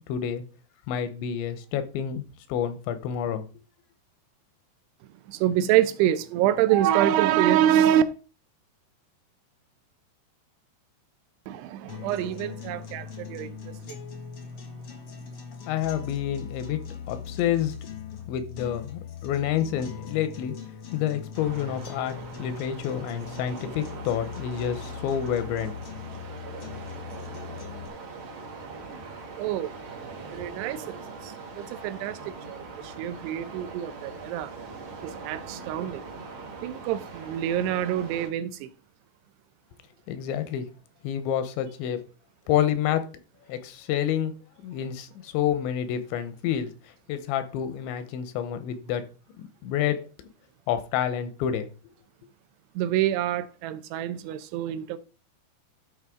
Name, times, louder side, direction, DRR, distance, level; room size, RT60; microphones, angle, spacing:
voice 1, 0.1-0.4 0.9-2.2 2.5-3.4 15.7-16.8 17.1-17.7 18.3-20.5 20.9-25.7 40.1-40.7 41.0-42.0 42.5-43.0 43.5-44.3 44.6-46.7 47.1-49.0 49.6-50.0 50.7-51.7, left 10 dB, 85° left, 3.2 m, -28 dB
voice 2, 5.3-8.0 11.5-14.0 29.4-29.7 30.3-31.0 31.2-34.5 35.0-36.0 36.6-38.7 52.8-55.0, right 11 dB, 80° right, 2.7 m, -26 dB
sound 1, 11.9-27.9, left 7 dB, 60° left, 1.5 m, -40 dB
sound 2, 21.3-38.3, right 4 dB, 60° right, 1.3 m, -41 dB
12.5 x 5.4 x 3.7 m
omnidirectional pair, 5.1 m